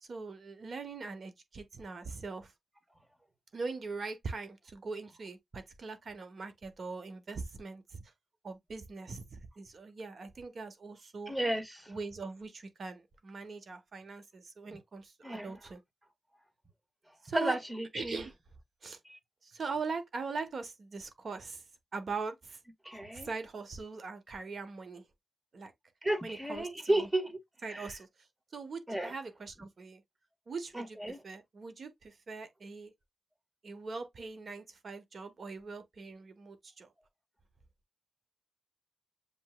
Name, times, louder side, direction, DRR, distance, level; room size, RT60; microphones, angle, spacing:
voice 1, 0.1-2.5 3.5-8.0 8.4-11.3 11.9-15.8 17.2-17.6 17.9-18.4 18.8-19.0 19.4-21.6 21.9-22.6 22.9-25.0 25.5-25.7 26.2-27.1 27.6-28.1 28.5-30.0 30.5-32.9 33.6-36.9, right 4 dB, 65° right, 1.0 m, -41 dB
voice 2, 11.3-11.9 15.2-15.5 17.3-18.2 19.1-19.2 22.8-23.3 26.0-27.4 27.7-27.9 28.9-29.1 30.7-31.2, right 1 dB, 15° right, 1.5 m, -33 dB
7.0 x 3.0 x 2.2 m
cardioid pair, 55°, 0 cm